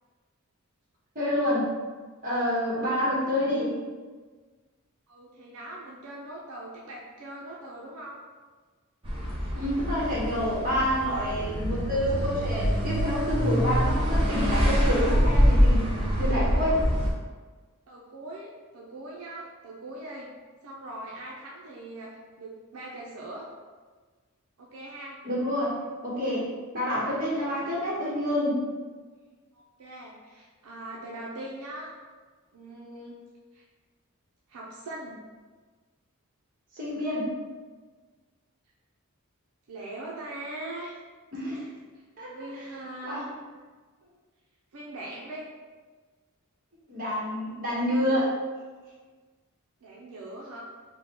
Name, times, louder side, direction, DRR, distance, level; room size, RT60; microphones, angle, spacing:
voice 1, 1.1-1.7 2.2-3.7 9.5-16.8 25.2-25.7 26.0-26.5 26.7-28.6 36.7-37.3 41.3-41.7 42.2-42.3 43.0-43.2 46.9-48.3, equal, 40° right, -6 dB, 1.2 m, -28 dB
voice 2, 5.1-8.2 17.9-20.3 20.6-23.5 24.6-25.2 29.5-31.9 32.5-33.2 33.5-33.6 34.5-35.2 39.7-41.0 41.9-43.3 44.7-45.5 49.8-50.6, right 1 dB, 75° right, -3 dB, 0.5 m, -41 dB
sound 1, 9.0-17.1, equal, 25° right, 0.7 m, -25 dB
3.6 x 2.1 x 4.3 m, 1.4 s
head